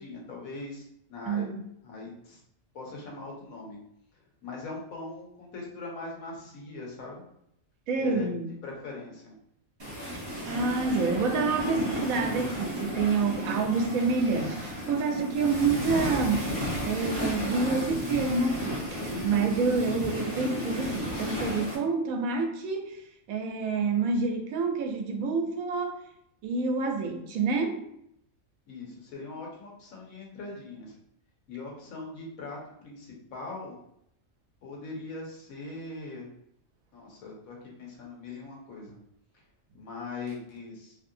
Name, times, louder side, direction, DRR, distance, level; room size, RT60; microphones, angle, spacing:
voice 1, 0.0-1.5 1.8-2.4 2.7-3.8 4.1-7.2 8.0-9.3 28.7-31.0 31.5-33.8 34.6-36.3 36.9-39.0 39.7-41.0, left 3 dB, 90° left, -2 dB, 1.3 m, -41 dB
voice 2, 1.3-1.6 7.9-8.5 10.5-16.6 16.8-22.9 23.3-26.0 26.4-27.8, right 4 dB, 85° right, 4 dB, 1.0 m, -28 dB
sound 1, 9.8-21.8, equal, 25° right, 0.7 m, -33 dB
3.0 x 2.7 x 2.5 m, 0.75 s
omnidirectional pair, 1.4 m